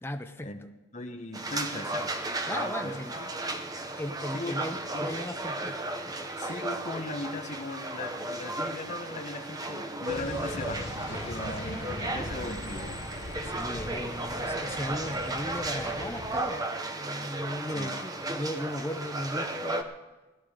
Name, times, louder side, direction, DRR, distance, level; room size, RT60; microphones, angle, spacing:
voice 1, 0.0-0.5 2.5-3.1 4.0-6.5 11.6-11.9 13.4-16.7 16.9-19.8, left 1 dB, 10° left, 6 dB, 0.5 m, -37 dB
voice 2, 0.9-2.1 2.5-3.3 4.2-4.6 4.9-5.2 6.4-10.8 11.1-13.0 17.7-18.0, left 2 dB, 35° left, 4 dB, 1.3 m, -38 dB
sound 1, 1.3-19.8, right 2 dB, 20° right, 0.9 m, -34 dB
sound 2, 10.1-16.4, left 2 dB, 65° left, 1.4 m, -40 dB
17.0 x 11.5 x 5.0 m, 1.2 s
head